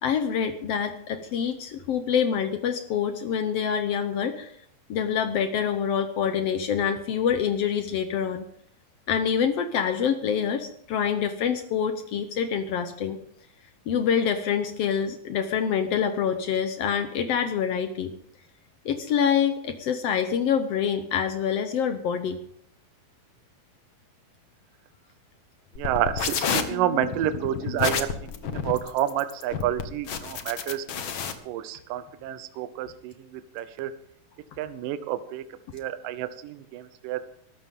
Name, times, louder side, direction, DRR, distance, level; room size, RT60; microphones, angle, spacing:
voice 1, 0.0-4.5 4.9-8.4 9.1-13.2 13.9-18.1 18.8-22.4, left 7 dB, 90° left, 8 dB, 1.3 m, -26 dB
sound 1, 25.7-31.3, left 6 dB, 60° left, 1.3 m, -30 dB
voice 2, 25.8-28.1 28.4-30.8 31.5-33.9 34.6-35.4 35.7-37.2, right 11 dB, 75° right, 12 dB, 2.4 m, -29 dB
22.0 x 12.5 x 3.7 m, 0.66 s
omnidirectional pair, 4.1 m